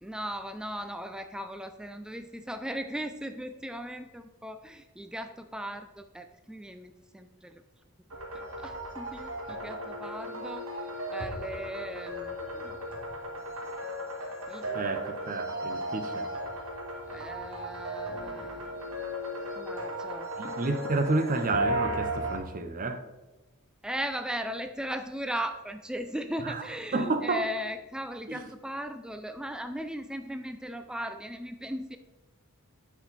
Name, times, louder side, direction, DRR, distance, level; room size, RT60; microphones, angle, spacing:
voice 1, 0.0-7.6 8.3-12.8 14.5-14.7 17.1-19.0 19.6-20.3 23.8-32.0, equal, 5° right, 8 dB, 0.3 m, -38 dB
sound 1, 8.1-22.4, right 1 dB, 70° right, 1.8 m, -35 dB
voice 2, 14.7-16.3 20.4-23.0 26.4-26.6 26.9-27.4 28.3-28.5, right 3 dB, 40° right, 9 dB, 0.6 m, -30 dB
8.4 x 6.1 x 4.0 m, 1.1 s
head